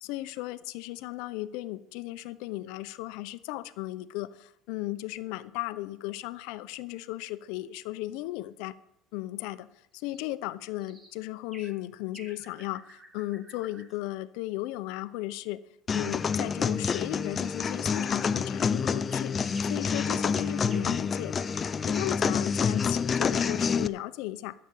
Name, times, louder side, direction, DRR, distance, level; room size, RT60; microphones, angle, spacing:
voice 1, 0.0-8.8 9.1-9.7 9.9-15.6 15.9-24.5, left 17 dB, 70° left, 12 dB, 0.8 m, -36 dB
sound 1, 10.0-10.2 10.8-11.2 11.5-11.8 12.1-14.0 17.5-17.7 18.2-18.6 19.0-22.0, right 1 dB, 20° right, 1.6 m, -52 dB
sound 2, 15.9-23.9, left 6 dB, 25° left, 0.4 m, -28 dB
13.0 x 6.8 x 8.5 m, 0.75 s
cardioid pair, 155°, 0 cm